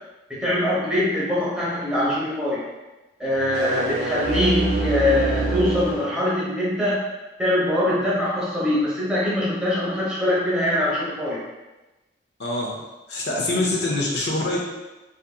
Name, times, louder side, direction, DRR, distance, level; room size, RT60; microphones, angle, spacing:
voice 1, 0.3-2.6 3.2-7.0 7.4-11.4 13.5-13.7, left 1 dB, 5° right, -8 dB, 0.8 m, -23 dB
sound 1, 3.4-6.2, right 3 dB, 60° right, 0.5 m, -26 dB
voice 2, 12.4-12.8 13.1-14.6, left 2 dB, 65° left, -2 dB, 0.5 m, -24 dB
2.7 x 2.6 x 2.2 m, 1.1 s
head